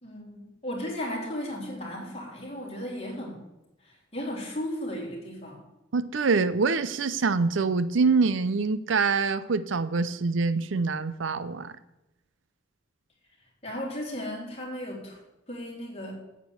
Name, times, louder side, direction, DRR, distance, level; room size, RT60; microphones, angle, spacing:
voice 1, 0.0-3.4 3.8-5.6 13.6-15.2 15.5-16.1, left 1 dB, 35° left, -2 dB, 3.4 m, -35 dB
voice 2, 5.9-11.7, right 4 dB, 70° right, 14 dB, 0.6 m, -25 dB
9.1 x 8.4 x 7.1 m, 0.96 s
head